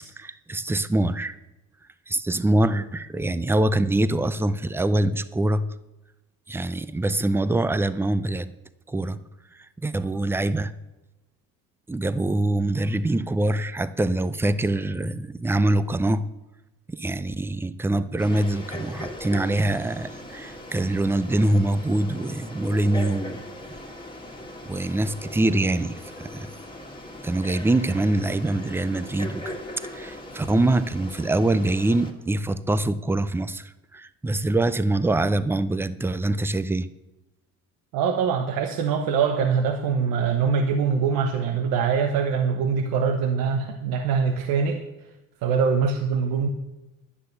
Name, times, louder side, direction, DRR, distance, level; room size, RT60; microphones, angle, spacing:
voice 1, 0.2-1.4 2.1-5.7 6.5-8.5 8.9-9.2 9.8-10.7 11.9-16.2 16.9-23.4 24.7-26.5 27.2-36.9, right 2 dB, 5° right, 14 dB, 0.4 m, -24 dB
Frog, 18.2-32.1, left 1 dB, 15° left, 1.8 m, -39 dB
voice 2, 37.9-44.8 45.4-46.5, right 6 dB, 90° right, 5 dB, 1.1 m, -23 dB
11.5 x 10.0 x 6.8 m, 1.0 s
cardioid pair, 130°, 34 cm